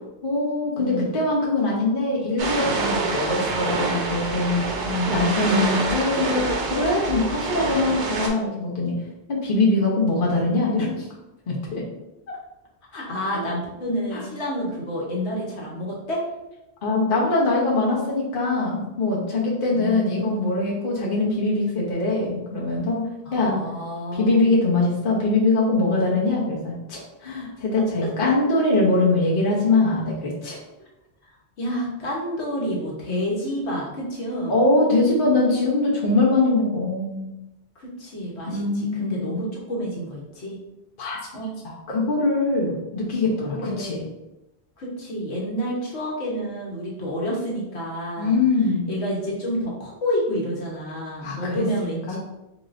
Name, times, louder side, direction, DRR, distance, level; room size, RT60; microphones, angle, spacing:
voice 1, 0.2-4.6 5.1-8.9 9.3-11.1 11.5-11.8 12.9-13.0 13.3-13.4 14.1-14.2 16.8-23.6 24.1-30.6 34.5-37.3 38.5-39.2 41.0-41.2 41.9-44.1 48.2-48.9 51.2-52.2, left 2 dB, 55° left, -4 dB, 1.0 m, -22 dB
voice 2, 0.8-1.1 4.8-5.2 12.3-12.4 12.9-16.2 19.7-20.6 23.2-24.4 31.2-31.3 31.6-34.6 37.7-40.6 41.3-41.5 43.6-44.0 44.8-48.4 48.9-52.2, equal, 80° left, -3 dB, 1.3 m, -29 dB
sound 1, 2.4-8.3, right 3 dB, 85° right, 1.0 m, -26 dB
3.9 x 3.6 x 2.5 m, 0.93 s
omnidirectional pair, 1.1 m